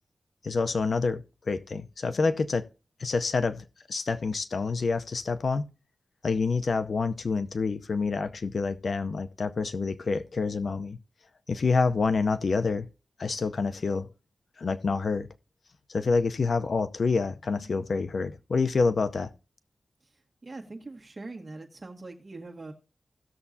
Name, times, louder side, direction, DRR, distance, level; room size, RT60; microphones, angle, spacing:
voice 1, 0.4-2.7 3.0-5.6 6.2-11.0 11.5-12.9 13.2-14.1 14.6-15.3 15.9-19.3, left 4 dB, 55° left, 0.7 m, -27 dB
voice 2, 20.4-22.7, right 3 dB, 35° right, 1.9 m, -42 dB
16.5 x 7.0 x 2.7 m
wide cardioid pair, 135°, 0 cm